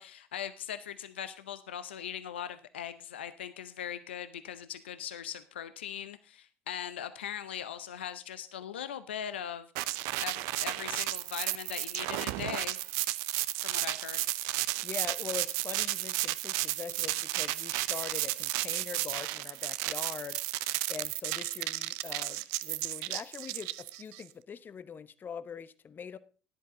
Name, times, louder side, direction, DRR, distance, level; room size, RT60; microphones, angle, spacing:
voice 1, 0.0-12.8 13.6-14.2, left 9 dB, 85° left, 12 dB, 0.6 m, -40 dB
sound 1, 9.8-24.2, right 18 dB, 65° right, 0.5 m, -33 dB
voice 2, 14.8-20.6 20.9-26.2, left 7 dB, 35° left, 15 dB, 0.8 m, -43 dB
13.0 x 10.5 x 3.7 m, 0.37 s
hypercardioid pair, 65°, 6 cm